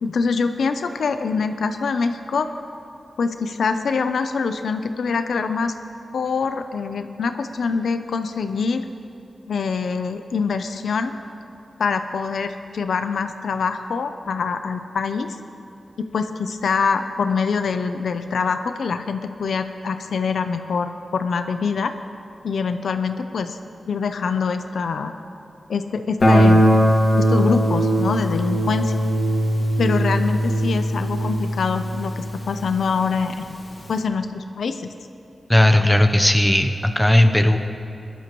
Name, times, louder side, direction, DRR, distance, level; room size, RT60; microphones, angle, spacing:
voice 1, 0.0-2.5 3.2-5.7 6.1-8.8 9.5-11.1 11.8-15.4 16.0-21.9 22.4-23.6 23.9-25.1 25.7-26.6 27.1-28.9 29.8-33.3 33.9-34.9, left 5 dB, 85° left, 8 dB, 0.6 m, -24 dB
Guitar, 26.2-32.9, equal, 40° left, 2.1 m, -19 dB
voice 2, 35.5-37.6, left 1 dB, 5° left, 6 dB, 0.7 m, -16 dB
20.5 x 12.0 x 3.1 m, 2.8 s
wide cardioid pair, 120°, 0 cm